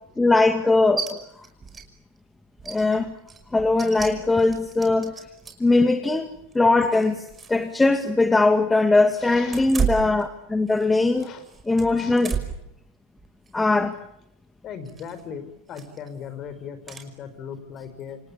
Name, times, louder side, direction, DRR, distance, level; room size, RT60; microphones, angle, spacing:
voice 1, 0.2-1.2 2.7-3.1 3.5-5.1 5.6-6.3 6.5-11.3 11.7-12.3 13.5-14.0, left 2 dB, 10° left, 7 dB, 2.0 m, -20 dB
sound 1, 1.0-1.1 1.4-1.9 2.2-2.3 2.6-5.7 6.3-7.6 7.9-8.0 9.4-10.9 11.2-12.7 13.2-13.5 14.9-15.2 15.7-16.1 16.9-17.1, right 6 dB, 20° right, 5.6 m, -33 dB
voice 2, 9.2-9.7 11.1-11.5 12.0-12.2 14.6-18.2, left 7 dB, 40° left, 12 dB, 5.1 m, -38 dB
29.5 x 28.0 x 7.2 m, 0.79 s
hypercardioid pair, 90°, 0 cm